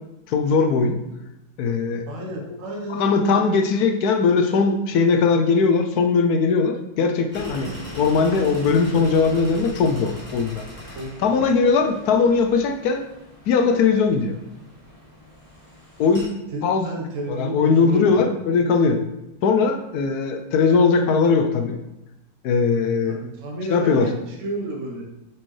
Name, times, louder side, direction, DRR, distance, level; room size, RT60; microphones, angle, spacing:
voice 1, 0.3-1.0 1.6-2.1 2.9-10.6 11.2-13.0 13.5-14.3 16.0-16.3 16.6-16.9 17.3-19.0 19.4-21.8 22.4-23.2 23.7-24.1, left 5 dB, 70° left, 6 dB, 1.0 m, -19 dB
voice 2, 2.1-3.6 10.9-11.5 16.5-18.3 23.2-25.1, right 1 dB, 50° right, -1 dB, 1.3 m, -31 dB
sound 1, 7.3-16.3, equal, 20° left, 1.8 m, -40 dB
7.5 x 4.3 x 3.1 m, 0.94 s
omnidirectional pair, 2.0 m